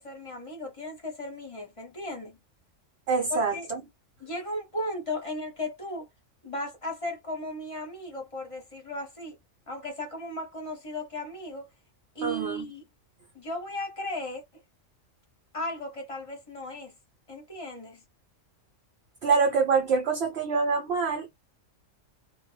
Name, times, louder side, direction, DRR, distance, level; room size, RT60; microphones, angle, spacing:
voice 1, 0.0-2.4 3.3-3.7 4.2-6.1 6.4-9.4 9.7-11.7 12.1-12.8 13.3-14.4 15.5-16.9 17.3-18.0, left 1 dB, 30° left, 0.9 m, -36 dB
voice 2, 3.1-3.8 12.2-12.6 19.2-21.3, right 5 dB, 60° right, 0.9 m, -25 dB
2.2 x 2.1 x 3.1 m
omnidirectional pair, 1.3 m